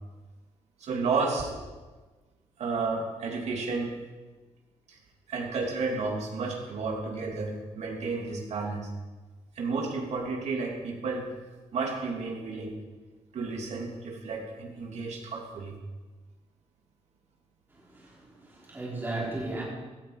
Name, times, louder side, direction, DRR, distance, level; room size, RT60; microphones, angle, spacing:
voice 1, 0.8-1.5 2.6-3.9 4.9-5.0 5.3-8.9 9.5-11.3 11.7-12.8 13.3-15.7, right 4 dB, 70° right, 1 dB, 2.9 m, -32 dB
voice 2, 17.7-19.6, right 2 dB, 15° right, -5 dB, 4.5 m, -36 dB
16.5 x 13.0 x 4.9 m, 1.3 s
wide cardioid pair, 170°, 12 cm